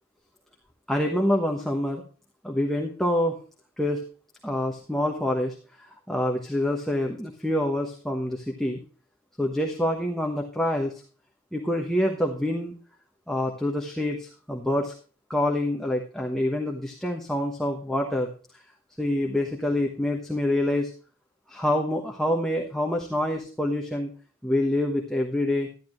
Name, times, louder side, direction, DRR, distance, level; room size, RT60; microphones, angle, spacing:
voice 1, 0.9-2.0 2.4-3.4 3.8-4.0 4.4-8.8 9.4-11.0 11.5-12.8 13.3-14.9 15.3-18.3 19.0-20.9 21.5-24.1 24.4-25.7, left 1 dB, ahead, 1 dB, 1.1 m, -26 dB
12.0 x 11.5 x 3.1 m, 0.39 s
head